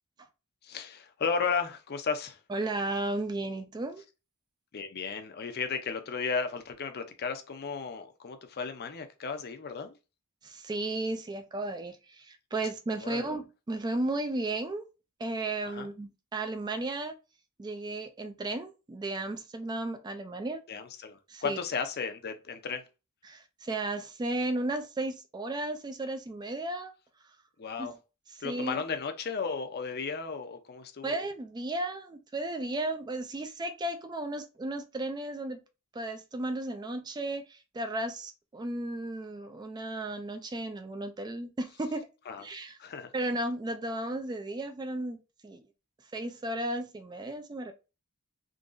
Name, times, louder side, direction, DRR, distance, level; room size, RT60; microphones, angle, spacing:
voice 1, 0.6-2.4 4.7-10.0 13.0-13.3 15.7-15.9 20.7-22.8 27.6-27.9 28.4-31.1 42.3-42.4 42.8-43.1, left 5 dB, 45° left, 0.5 m, -34 dB
voice 2, 2.5-4.0 10.4-14.8 15.2-17.2 17.6-20.6 21.3-21.6 23.2-26.9 27.8-27.9 28.4-28.8 31.0-35.6 35.9-42.1 42.4-42.8 43.1-45.6 46.1-47.7, right 2 dB, 20° right, 0.3 m, -34 dB
3.8 x 2.8 x 2.5 m
head